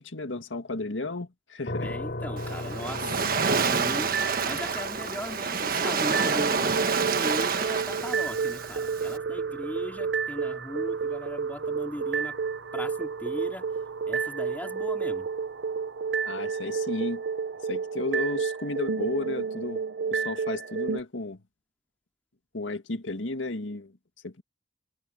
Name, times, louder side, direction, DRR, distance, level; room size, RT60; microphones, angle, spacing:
voice 1, 0.0-1.9 16.3-17.2 17.6-19.8 20.1-21.4 22.5-23.9 24.2-24.4, left 2 dB, 90° left, 1.9 m, -33 dB
sound 1, 1.7-14.5, left 1 dB, 55° left, 4.4 m, -42 dB
voice 2, 1.8-12.4 12.7-13.7 14.1-15.3, left 1 dB, 10° left, 3.7 m, -38 dB
Waves surf, 2.4-9.2, right 5 dB, 50° right, 1.4 m, -28 dB
sound 2, 4.1-5.1 6.1-21.0, right 5 dB, 70° right, 1.0 m, -31 dB
head